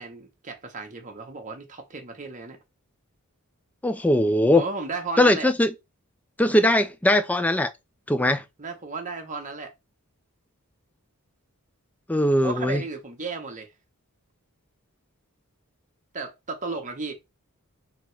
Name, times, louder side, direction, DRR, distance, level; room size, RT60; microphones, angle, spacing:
voice 1, 0.0-2.6 4.5-5.5 8.6-9.7 12.4-13.7 16.1-17.1, right 3 dB, 35° right, 1.0 m, -34 dB
voice 2, 3.8-4.6 5.2-5.7 6.4-7.7 8.1-8.4 12.1-12.8, left 1 dB, 5° left, 0.4 m, -20 dB
3.8 x 2.9 x 4.5 m
head